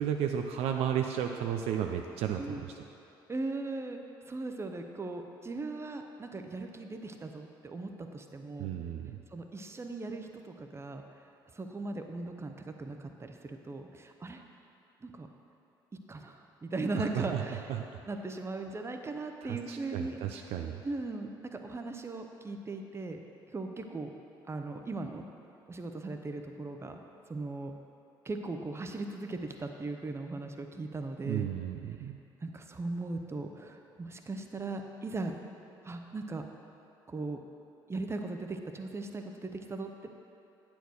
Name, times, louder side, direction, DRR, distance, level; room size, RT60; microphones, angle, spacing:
voice 1, 0.0-2.7 8.6-9.2 17.0-17.4 17.7-17.9 19.4-20.8 31.3-32.1, right 9 dB, 60° right, 4 dB, 0.4 m, -33 dB
voice 2, 2.4-2.7 3.3-4.0 4.3-8.7 9.3-11.0 11.5-14.4 15.0-15.3 16.1-17.7 18.1-20.5 20.8-23.2 23.5-24.1 24.5-25.2 25.7-27.0 27.3-27.7 28.2-31.5 32.4-35.3 35.8-36.5 37.1-37.4 37.9-40.1, right 3 dB, 20° right, 5 dB, 0.8 m, -38 dB
9.2 x 4.4 x 6.2 m, 2.8 s
figure-of-eight pair, 50°, 12 cm